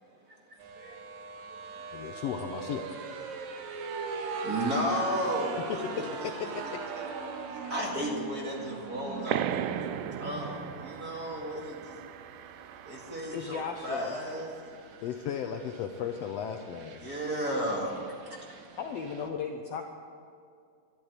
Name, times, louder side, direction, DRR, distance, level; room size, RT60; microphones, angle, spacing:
sound 1, 0.6-19.3, right 4 dB, 65° right, 2.2 m, -41 dB
voice 1, 1.9-3.0 5.7-7.0 7.6-7.8 15.0-17.1, left 8 dB, 90° left, 4 dB, 1.4 m, -36 dB
voice 2, 4.4-6.1 7.0-7.1 7.7-9.8 10.2-12.0 12.9-14.5 17.0-18.4, equal, 30° right, -2 dB, 2.2 m, -33 dB
sound 2, 9.3-14.5, right 10 dB, 80° right, 2.0 m, -37 dB
voice 3, 13.3-14.1 18.8-19.8, left 6 dB, 70° left, 4 dB, 1.5 m, -35 dB
12.0 x 12.0 x 9.5 m, 2.3 s
omnidirectional pair, 3.8 m